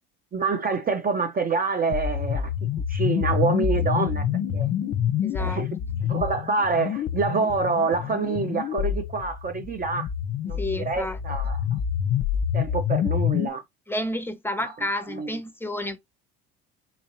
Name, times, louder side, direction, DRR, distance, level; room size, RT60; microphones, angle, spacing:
voice 1, 0.3-2.5 2.9-4.2 4.5-4.7 5.4-5.7 6.0-10.1 10.5-11.6 12.5-13.6 14.6-14.7 15.1-15.4, right 4 dB, 25° right, 0.5 m, -26 dB
sound 1, 1.9-13.5, left 9 dB, 45° left, 0.6 m, -27 dB
sound 2, 3.3-7.6, right 4 dB, 75° right, 1.8 m, -43 dB
voice 2, 5.2-5.6 10.6-11.2 13.9-16.0, left 1 dB, 5° left, 0.7 m, -30 dB
4.0 x 2.7 x 3.0 m
supercardioid pair, 85°, 33 cm